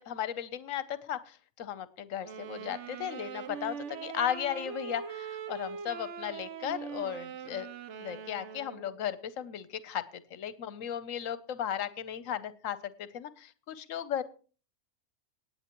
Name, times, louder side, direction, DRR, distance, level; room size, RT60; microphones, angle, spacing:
voice 1, 0.0-7.7 8.0-14.2, left 10 dB, 65° left, 15 dB, 1.1 m, -36 dB
sound 1, 2.2-9.0, right 7 dB, 60° right, 1.0 m, -42 dB
18.5 x 8.8 x 3.0 m, 0.37 s
omnidirectional pair, 1.5 m